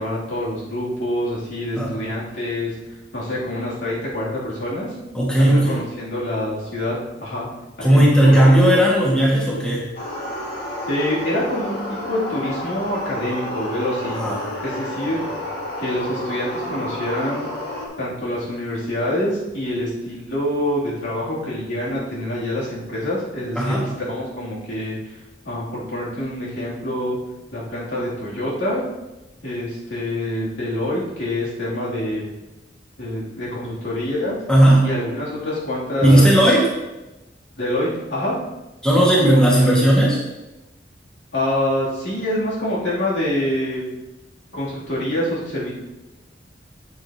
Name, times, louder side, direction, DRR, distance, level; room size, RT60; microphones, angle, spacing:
voice 1, 0.0-2.8 3.1-4.9 5.4-7.5 7.8-8.9 10.9-14.2 14.6-15.2 15.8-17.4 18.0-25.2 25.4-27.2 27.5-28.8 29.4-32.3 33.0-34.4 34.8-36.3 37.6-38.4 39.3-39.7 41.3-43.8 44.5-45.7, left 1 dB, 70° left, -7 dB, 3.0 m, -26 dB
voice 2, 5.1-5.8 7.8-9.8 14.1-14.5 15.0-15.3 23.6-23.8 34.5-34.9 36.0-36.7 38.8-40.2, right 1 dB, 5° left, -6 dB, 1.9 m, -15 dB
sound 1, 9.9-17.9, left 1 dB, 55° left, 2.0 m, -30 dB
8.5 x 8.1 x 2.9 m, 1.0 s
head